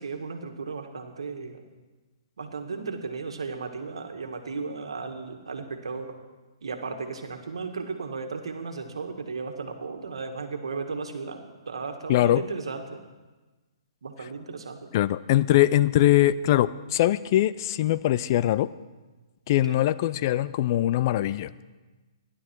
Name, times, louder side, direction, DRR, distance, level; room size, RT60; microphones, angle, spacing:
voice 1, 0.0-1.6 2.4-6.2 6.6-13.0 14.0-14.9 19.6-19.8, right 4 dB, 75° right, 5 dB, 1.7 m, -35 dB
voice 2, 12.1-12.4 14.9-18.7 19.5-21.5, left 14 dB, 45° left, 17 dB, 0.4 m, -22 dB
15.5 x 11.5 x 4.6 m, 1.2 s
hypercardioid pair, 135°, 3 cm